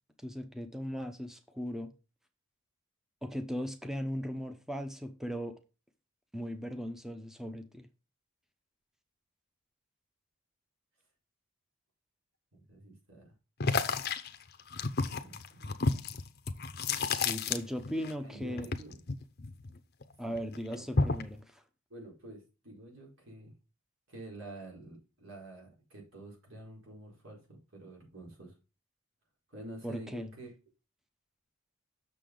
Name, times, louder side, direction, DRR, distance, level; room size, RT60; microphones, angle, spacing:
voice 1, 0.2-1.9 3.2-5.6 6.3-7.9 17.1-18.7 20.2-21.6 29.8-30.3, equal, ahead, 0.8 m, -38 dB
voice 2, 12.5-13.3 15.2-16.1 18.2-19.0 20.3-20.4 20.7-20.8 21.9-23.5 24.1-28.5 29.5-30.5, right 1 dB, 65° right, 4.3 m, -48 dB
sound 1, 13.6-18.1 18.4-20.0 20.4-21.4, left 4 dB, 45° left, 0.7 m, -31 dB
6.8 x 6.8 x 3.8 m
head